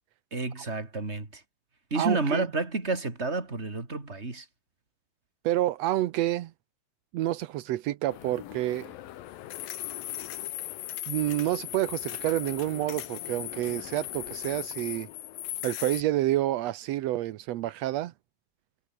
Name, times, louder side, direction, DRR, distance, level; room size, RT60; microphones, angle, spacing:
voice 1, 0.3-1.4 1.9-4.5, right 3 dB, 20° right, 3.6 m, -30 dB
voice 2, 1.9-2.5 5.4-6.5 7.1-8.9 11.1-15.1 15.6-18.1, right 14 dB, 85° right, 1.5 m, -28 dB
sound 1, 8.1-16.0, left 14 dB, 80° left, 3.0 m, -38 dB
omnidirectional pair, 4.1 m